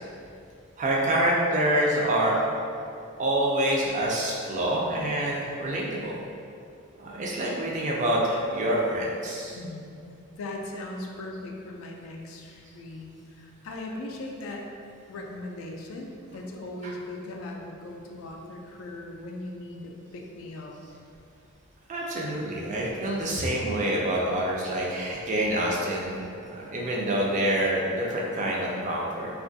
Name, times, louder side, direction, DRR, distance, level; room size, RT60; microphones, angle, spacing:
voice 1, 0.8-2.4 3.2-6.2 7.0-9.6 16.8-16.9 21.9-26.2 26.4-29.3, right 1 dB, 35° right, -3 dB, 0.3 m, -26 dB
voice 2, 10.4-14.7 15.1-20.7, left 2 dB, 65° left, 1 dB, 0.3 m, -39 dB
2.5 x 2.3 x 2.5 m, 2.5 s
head